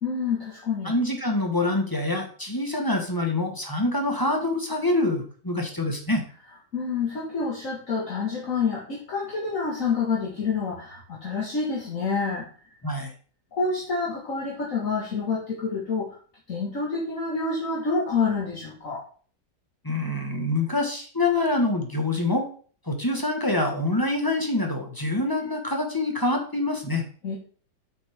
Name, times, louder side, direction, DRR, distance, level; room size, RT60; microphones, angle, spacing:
voice 1, 0.0-0.9 6.7-12.5 13.5-16.2 16.5-19.0 27.2-27.4, left 4 dB, 50° left, -4 dB, 2.0 m, -28 dB
voice 2, 0.8-6.2 12.8-13.1 19.8-22.5 22.8-27.0, left 2 dB, 15° left, 3 dB, 1.3 m, -25 dB
8.1 x 6.6 x 3.6 m, 0.42 s
omnidirectional pair, 1.8 m